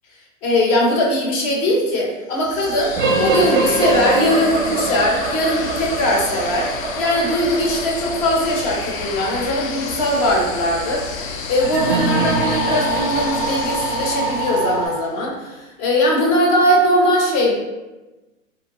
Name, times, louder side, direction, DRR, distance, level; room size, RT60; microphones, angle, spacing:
voice 1, 0.4-6.7 7.0-11.0 11.5-17.5, equal, 30° left, -1 dB, 0.6 m, -20 dB
sound 1, 2.3-15.1, left 5 dB, 75° left, 0.5 m, -30 dB
sound 2, 3.0-14.9, right 3 dB, 40° right, 0.5 m, -24 dB
2.6 x 2.1 x 2.8 m, 1.1 s
hypercardioid pair, 125°, 41 cm